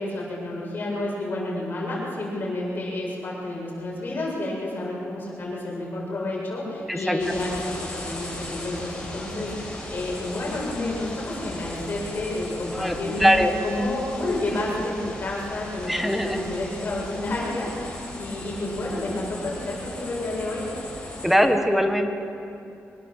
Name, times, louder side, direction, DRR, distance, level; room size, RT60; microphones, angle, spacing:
voice 1, 0.0-13.4 13.6-20.7, left 2 dB, 40° left, -4 dB, 7.7 m, -30 dB
sound 1, 7.2-21.3, left 1 dB, 15° left, 6.6 m, -37 dB
voice 2, 12.7-13.5 15.9-16.4 21.2-22.1, equal, ahead, 5 dB, 1.6 m, -21 dB
25.0 x 21.0 x 7.6 m, 2.7 s
wide cardioid pair, 150°, 5 cm